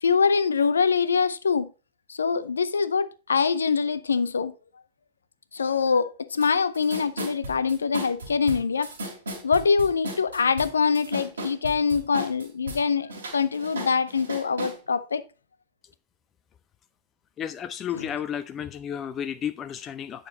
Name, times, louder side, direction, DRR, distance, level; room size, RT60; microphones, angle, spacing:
voice 1, 0.0-1.7 2.1-4.5 5.5-8.9 9.4-15.2 17.9-18.0, left 5 dB, 75° left, 0.7 m, -24 dB
sound 1, 6.4-6.5 6.7-12.8 13.1-14.8, right 1 dB, 75° right, 3.9 m, -35 dB
voice 2, 17.4-20.3, left 9 dB, 30° left, 0.6 m, -32 dB
9.6 x 6.5 x 4.2 m
figure-of-eight pair, 90°, 0 cm